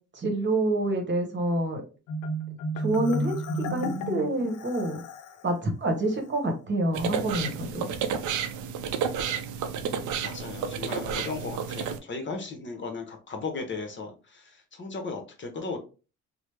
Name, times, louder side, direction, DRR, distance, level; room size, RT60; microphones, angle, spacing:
voice 1, 0.1-1.8 2.8-5.0 5.4-7.9, right 1 dB, 40° right, 2 dB, 1.0 m, -27 dB
Marimba xylophone, 2.1-5.4, equal, 85° left, 0.5 m, -32 dB
sound 1, 6.9-12.0, right 7 dB, 80° right, 0.5 m, -31 dB
voice 2, 10.2-15.8, left 4 dB, 40° left, 3 dB, 0.8 m, -36 dB
3.0 x 2.0 x 3.3 m, 0.34 s
cardioid pair, 90°, 30 cm